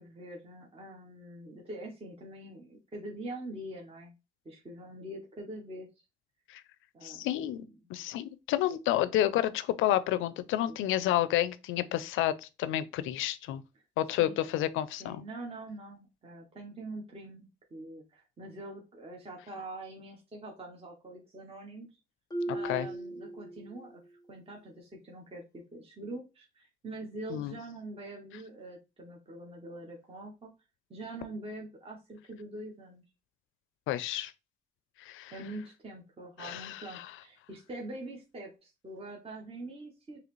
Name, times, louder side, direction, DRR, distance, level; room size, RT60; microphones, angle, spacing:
voice 1, 0.0-4.1 4.4-5.9 6.9-8.0 10.7-10.8 14.2-14.4 15.0-21.9 22.5-24.0 24.3-30.5 30.9-33.0 35.3-40.2, right 1 dB, 30° right, 0.9 m, -44 dB
voice 2, 7.0-7.6 7.9-13.6 14.0-15.2 22.5-22.9 27.3-27.5 33.9-34.3 35.0-35.3 36.4-37.1, left 13 dB, 90° left, 0.4 m, -30 dB
Marimba xylophone, 22.3-24.0, right 2 dB, 20° left, 0.5 m, -37 dB
3.9 x 2.9 x 3.0 m
cardioid pair, 90°, 20 cm